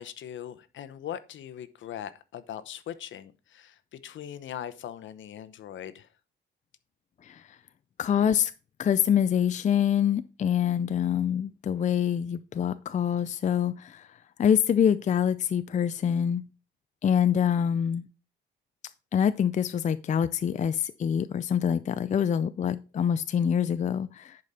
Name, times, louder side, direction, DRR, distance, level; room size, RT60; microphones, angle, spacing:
voice 1, 0.0-6.1, left 10 dB, 70° left, 0.9 m, -40 dB
voice 2, 8.0-8.5 8.8-14.0 14.4-16.4 17.0-18.0 19.1-24.4, left 8 dB, 35° left, 0.4 m, -25 dB
10.5 x 5.0 x 4.2 m
cardioid pair, 115°, 20 cm